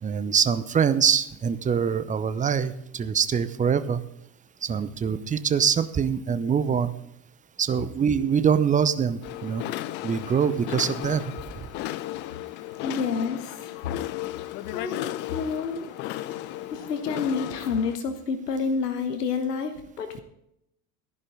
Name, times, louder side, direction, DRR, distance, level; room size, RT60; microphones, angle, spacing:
voice 1, 0.0-4.0 4.6-6.9 7.6-9.6 10.0-11.3, right 7 dB, 15° right, 14 dB, 0.7 m, -24 dB
sound 1, 9.2-18.0, left 15 dB, 25° left, 0.3 m, -35 dB
voice 2, 12.8-13.7 14.7-15.9 16.7-20.2, left 5 dB, 75° left, 8 dB, 1.2 m, -29 dB
14.5 x 11.0 x 3.7 m, 0.79 s
figure-of-eight pair, 75°, 48 cm